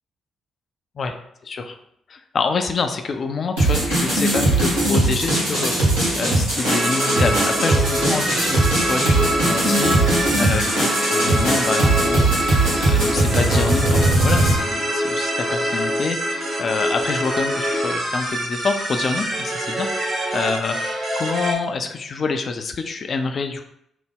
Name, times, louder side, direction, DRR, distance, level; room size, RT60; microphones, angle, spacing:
voice 1, 1.4-1.8 2.1-23.6, left 4 dB, 50° left, 6 dB, 0.3 m, -27 dB
sound 1, 3.6-14.5, right 2 dB, 90° right, 1.2 m, -20 dB
sound 2, 6.6-21.5, equal, 50° right, 1.0 m, -25 dB
3.4 x 2.0 x 3.4 m, 0.74 s
figure-of-eight pair, 40°, 0 cm